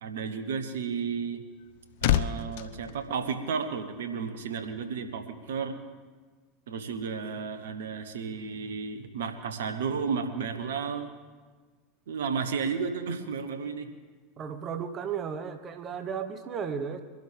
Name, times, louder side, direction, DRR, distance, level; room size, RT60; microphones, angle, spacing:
voice 1, 0.0-1.4 2.0-5.8 6.7-11.1 12.1-13.9, right 5 dB, 75° right, 8 dB, 1.3 m, -33 dB
sound 1, 1.3-4.0 4.2-4.5, left 11 dB, 65° left, 0.5 m, -30 dB
voice 2, 14.4-17.0, right 7 dB, 40° right, 9 dB, 1.3 m, -34 dB
23.5 x 12.0 x 3.5 m, 1.4 s
hypercardioid pair, 80°, 0 cm